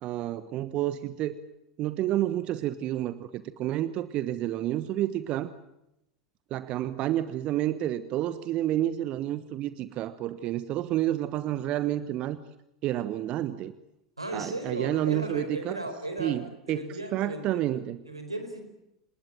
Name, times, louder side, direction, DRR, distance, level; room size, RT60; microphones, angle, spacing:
voice 1, 0.0-1.4 1.8-5.5 6.5-12.4 12.8-13.7 14.3-15.8 16.2-16.4 16.7-16.8 17.1-18.0, right 13 dB, 40° right, 14 dB, 1.1 m, -29 dB
voice 2, 14.2-16.4 16.7-17.6 18.0-18.7, right 1 dB, 85° right, 6 dB, 4.7 m, -36 dB
28.0 x 20.0 x 9.1 m, 0.86 s
figure-of-eight pair, 80°, 3 cm